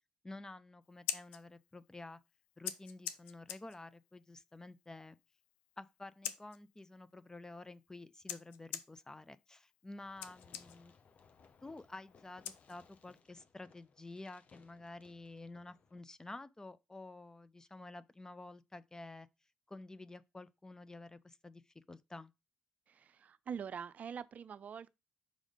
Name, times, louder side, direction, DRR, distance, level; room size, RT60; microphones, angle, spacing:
voice 1, 0.2-2.2 2.6-5.2 5.8-10.9 11.6-19.3 19.7-22.3, left 2 dB, 20° left, 0.5 m, -51 dB
Scissors, 0.8-13.2, left 11 dB, 70° left, 0.5 m, -49 dB
Fireworks, 10.0-16.0, left 5 dB, 45° left, 0.8 m, -65 dB
voice 2, 22.9-24.9, right 7 dB, 50° right, 0.5 m, -44 dB
5.2 x 4.9 x 5.0 m
figure-of-eight pair, 45°, 3 cm